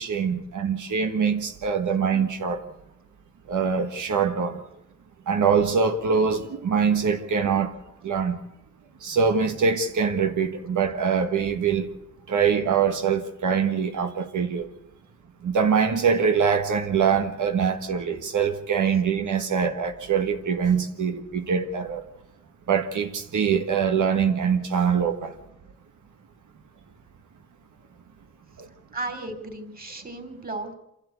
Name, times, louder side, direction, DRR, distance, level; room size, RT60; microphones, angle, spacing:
voice 1, 0.0-2.6 3.5-4.6 5.3-8.4 9.0-11.9 12.3-14.7 15.4-22.0 22.7-25.3 28.6-28.7, right 6 dB, 90° right, 1.5 m, -24 dB
voice 2, 28.9-30.7, right 2 dB, 30° right, 3.5 m, -34 dB
27.5 x 12.5 x 8.2 m
wide cardioid pair, 100°, 29 cm